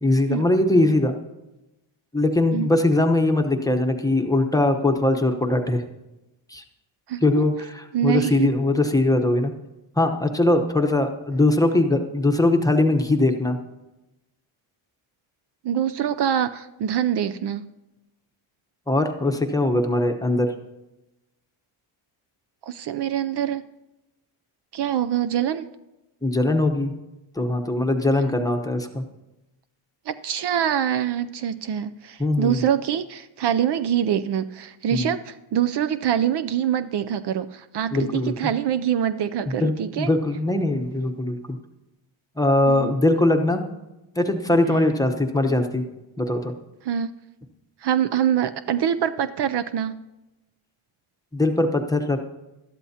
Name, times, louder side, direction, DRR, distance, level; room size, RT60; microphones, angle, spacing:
voice 1, 0.0-1.1 2.1-5.8 6.5-6.6 7.2-9.5 10.0-13.6 18.9-20.5 26.2-26.9 27.4-29.0 32.2-32.6 34.9-35.1 37.9-38.3 39.6-39.7 40.0-41.6 42.4-43.6 44.2-45.8 46.2-46.5 51.3-52.2, left 2 dB, 5° left, 5 dB, 0.9 m, -21 dB
voice 2, 7.1-7.5 7.9-8.5 15.6-17.7 22.7-23.6 24.7-25.7 28.2-28.3 30.1-40.1 42.7-42.9 46.8-47.1 47.8-49.9, right 9 dB, 55° right, 12 dB, 0.6 m, -24 dB
20.0 x 13.0 x 2.8 m, 0.98 s
cardioid pair, 140°, 49 cm